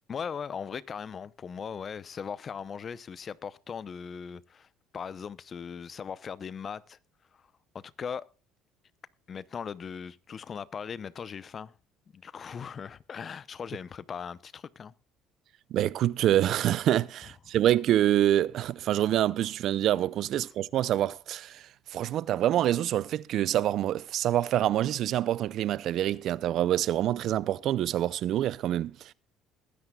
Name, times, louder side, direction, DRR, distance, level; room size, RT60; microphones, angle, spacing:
voice 1, 0.1-4.7 4.9-7.0 7.3-7.4 7.7-8.2 9.3-11.7 12.1-14.9, left 6 dB, 40° left, 0.7 m, -39 dB
voice 2, 15.7-21.6 21.9-28.9, right 12 dB, 60° right, 0.5 m, -26 dB
21.5 x 9.8 x 2.3 m
supercardioid pair, 85°, 0 cm